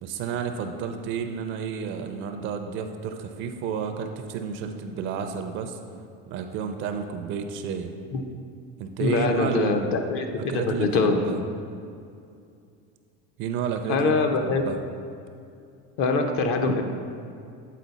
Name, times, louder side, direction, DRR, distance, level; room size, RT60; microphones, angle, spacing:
voice 1, 0.0-5.8 6.3-7.9 8.8-9.9 10.4-11.4 13.4-14.1 14.4-14.8, right 6 dB, 40° right, 6 dB, 0.4 m, -31 dB
voice 2, 9.0-11.2 13.9-14.6 16.0-16.8, left 3 dB, 45° left, 5 dB, 0.6 m, -23 dB
8.3 x 4.1 x 4.0 m, 2.4 s
cardioid pair, 150°, 31 cm